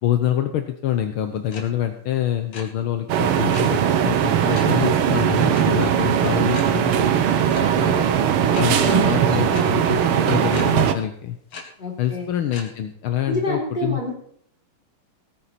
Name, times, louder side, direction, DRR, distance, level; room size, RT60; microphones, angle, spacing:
voice 1, 0.0-7.1 8.6-11.4 12.0-14.1, left 11 dB, 70° left, 8 dB, 1.7 m, -26 dB
sound 1, 1.5-1.6 1.9-2.6 3.5-3.6 4.5-4.7 5.5-5.6 6.0-6.1 6.5-6.6 7.5-7.6 8.5-8.6 9.5-9.6 10.5-10.6 11.5-11.6 12.5-12.6, left 5 dB, 90° left, 2.9 m, -36 dB
sound 2, 3.1-10.9, right 9 dB, 75° right, 1.9 m, -19 dB
voice 2, 7.5-8.1 8.5-9.8 11.8-12.3 13.3-14.1, left 1 dB, 20° left, 0 dB, 4.0 m, -29 dB
18.0 x 9.7 x 4.3 m, 0.62 s
omnidirectional pair, 2.4 m